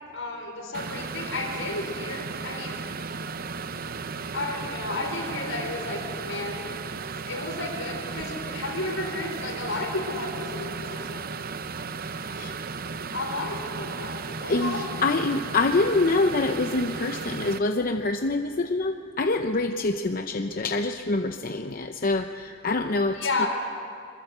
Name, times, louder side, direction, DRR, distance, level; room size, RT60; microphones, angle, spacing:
voice 1, 0.1-2.9 4.3-6.6 7.3-11.2 13.1-14.9 23.1-23.5, left 2 dB, 75° left, 2 dB, 4.8 m, -32 dB
sound 1, 0.7-17.6, right 4 dB, 45° right, 0.7 m, -35 dB
voice 2, 14.5-23.5, left 3 dB, 45° left, 6 dB, 0.7 m, -26 dB
23.5 x 21.0 x 8.0 m, 2.4 s
head